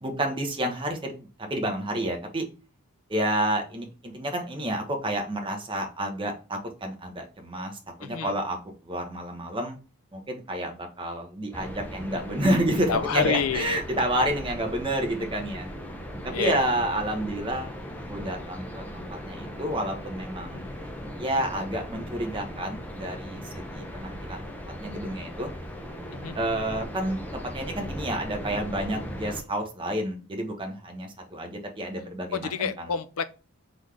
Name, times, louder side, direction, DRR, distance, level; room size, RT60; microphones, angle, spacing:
voice 1, 0.0-2.4 3.1-8.6 8.8-9.8 10.1-15.7 16.2-17.8 18.1-20.7 21.2-24.4 24.8-25.5 26.3-32.9, right 1 dB, 20° right, 1.0 m, -30 dB
voice 2, 8.0-8.3 12.9-13.8 16.3-16.6 26.1-26.4 32.3-33.3, left 6 dB, 75° left, 0.5 m, -28 dB
sound 1, 11.5-29.4, equal, 5° left, 0.6 m, -38 dB
3.9 x 3.6 x 3.2 m
head